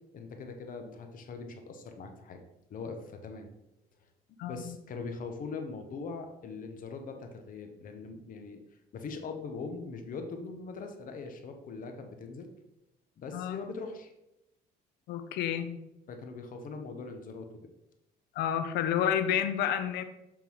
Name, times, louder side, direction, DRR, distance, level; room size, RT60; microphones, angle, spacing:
voice 1, 0.1-2.4 2.7-3.5 4.4-8.6 8.9-12.5 13.2-14.1 16.1-17.5, left 4 dB, 55° left, 5 dB, 0.9 m, -41 dB
voice 2, 4.4-4.8 13.3-13.6 15.1-15.8 18.4-20.0, left 9 dB, 80° left, 9 dB, 0.6 m, -30 dB
7.0 x 3.7 x 4.7 m, 0.92 s
cardioid pair, 110°, 17 cm